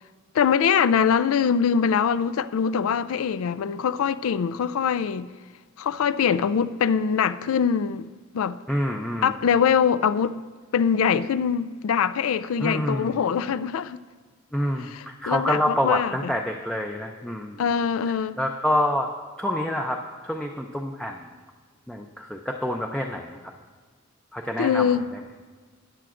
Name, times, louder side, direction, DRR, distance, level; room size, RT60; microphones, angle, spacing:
voice 1, 0.3-5.3 5.8-8.1 8.3-8.6 9.2-10.4 10.7-14.0 14.8-16.3 17.6-18.4 24.6-25.1, left 7 dB, 90° left, 0.3 m, -23 dB
voice 2, 8.7-9.3 12.6-13.1 14.5-17.6 18.4-19.1 19.4-21.3 21.9-23.4 24.3-25.2, equal, 5° left, 0.4 m, -27 dB
13.5 x 9.2 x 2.5 m
head